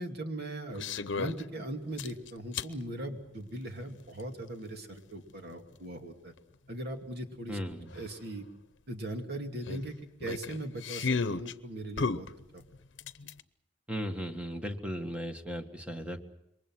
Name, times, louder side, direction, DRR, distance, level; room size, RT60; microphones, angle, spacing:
voice 1, 0.0-6.3 6.7-7.6 7.9-8.4 8.9-10.0 10.2-12.3 12.5-12.6, right 1 dB, 60° right, 4 dB, 2.6 m, -39 dB
sound 1, 0.7-1.4 2.0-2.7 4.2-4.3 7.0-7.1 7.3-7.4 7.9-8.0 9.7-11.5 12.0-13.4, left 4 dB, 80° left, 0.8 m, -33 dB
voice 2, 7.5-7.9 13.9-16.2, equal, 5° right, 5 dB, 1.8 m, -36 dB
27.5 x 23.0 x 6.3 m, 0.80 s
head